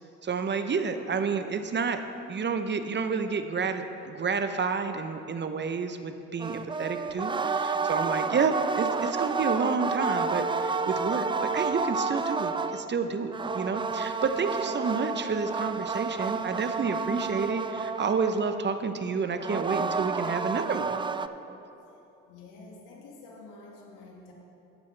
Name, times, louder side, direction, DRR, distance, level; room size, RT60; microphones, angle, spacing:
voice 1, 0.2-2.0 2.3-21.0, right 5 dB, 35° right, 8 dB, 0.8 m, -30 dB
sound 1, 6.4-12.9 13.3-18.7 19.4-21.3, right 4 dB, 15° right, 0.4 m, -30 dB
voice 2, 22.3-24.3, left 3 dB, 75° left, -1 dB, 2.0 m, -48 dB
13.5 x 9.3 x 3.4 m, 2.9 s
hypercardioid pair, 55°, 32 cm